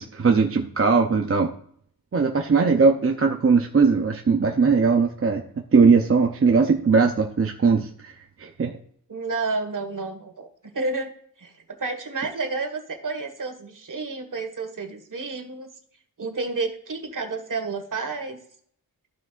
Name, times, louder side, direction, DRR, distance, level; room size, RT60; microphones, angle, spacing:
voice 1, 0.0-1.5 2.1-5.4 5.7-8.1 8.4-8.7, right 5 dB, 40° right, 3 dB, 0.7 m, -19 dB
voice 2, 9.1-10.5 10.7-11.1 11.4-15.7 16.2-18.4, right 3 dB, 60° right, 5 dB, 1.7 m, -30 dB
14.0 x 6.1 x 2.5 m, 0.62 s
wide cardioid pair, 80°, 36 cm